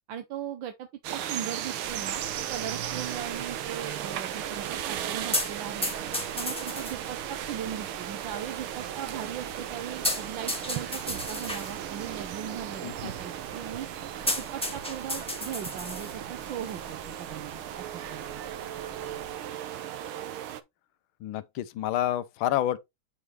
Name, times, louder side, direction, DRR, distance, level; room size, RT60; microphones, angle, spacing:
voice 1, 0.1-2.2 2.5-5.9 6.4-13.9 14.4-18.4, right 9 dB, 70° right, 1.5 m, -39 dB
sound 1, 1.0-20.6, right 11 dB, 85° right, 1.7 m, -36 dB
sound 2, 1.8-19.3, left 1 dB, 5° left, 1.2 m, -38 dB
voice 2, 21.2-22.8, left 13 dB, 80° left, 1.5 m, -29 dB
8.3 x 4.9 x 3.2 m
omnidirectional pair, 2.3 m